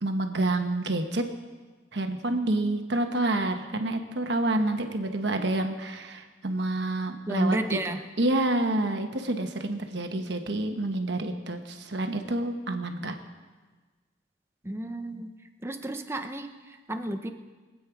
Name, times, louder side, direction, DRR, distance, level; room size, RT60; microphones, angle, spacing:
voice 1, 0.0-1.2 1.9-7.8 8.2-13.2, right 2 dB, 65° right, 5 dB, 1.2 m, -28 dB
voice 2, 7.3-8.0 10.2-10.3 14.6-15.3 15.6-17.3, right 1 dB, 15° right, 6 dB, 0.8 m, -31 dB
23.0 x 8.6 x 4.8 m, 1.4 s
head